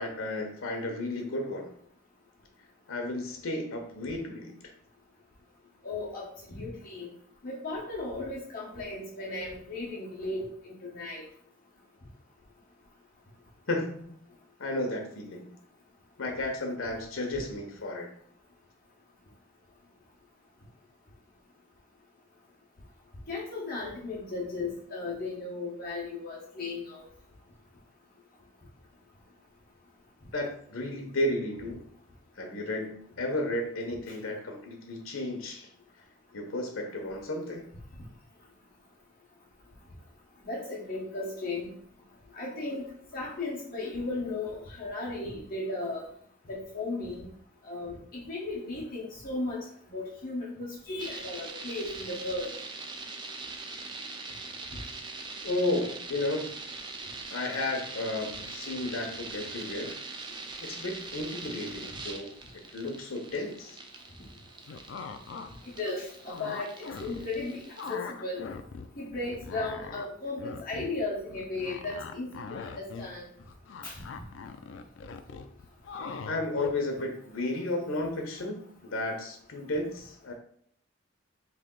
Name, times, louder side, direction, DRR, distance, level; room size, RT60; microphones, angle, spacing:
voice 1, 0.0-1.7 2.9-4.7 13.7-14.1 14.6-15.5 16.2-18.1 30.3-31.9 32.4-35.7 36.3-37.7 55.4-56.6 57.3-60.0 60.6-62.3 62.7-63.8 76.3-80.3, left 2 dB, 80° left, 3 dB, 0.9 m, -33 dB
voice 2, 5.8-7.1 7.4-11.2 23.3-27.1 40.4-41.7 42.4-42.8 43.1-46.0 46.5-47.3 47.6-49.7 49.9-52.5 65.8-66.7 67.0-67.6 67.9-68.5 69.0-73.2 73.8-74.0, left 2 dB, 45° left, -6 dB, 1.1 m, -35 dB
sound 1, 51.0-68.0, right 3 dB, 20° right, 0.3 m, -42 dB
sound 2, 64.7-65.5 65.8-67.4 67.7-68.9 69.2-77.0, left 5 dB, 60° left, 0.3 m, -41 dB
3.4 x 2.8 x 3.8 m, 0.63 s
head